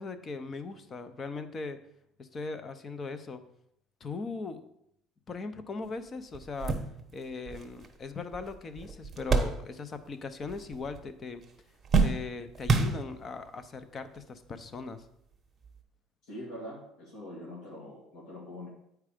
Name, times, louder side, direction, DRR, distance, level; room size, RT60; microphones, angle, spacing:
voice 1, 0.0-1.8 2.2-3.4 4.0-4.6 5.3-6.8 7.1-11.4 12.0-15.0, left 4 dB, 30° left, 11 dB, 0.6 m, -39 dB
sound 1, 5.8-5.9 6.3-10.1 10.4-11.1 11.4-13.5 14.2-14.3 15.6-15.8, right 4 dB, 20° right, 0.9 m, -30 dB
voice 2, 16.3-18.7, left 1 dB, 75° left, -6 dB, 2.2 m, -43 dB
8.7 x 4.7 x 5.0 m, 0.76 s
cardioid pair, 140°, 0 cm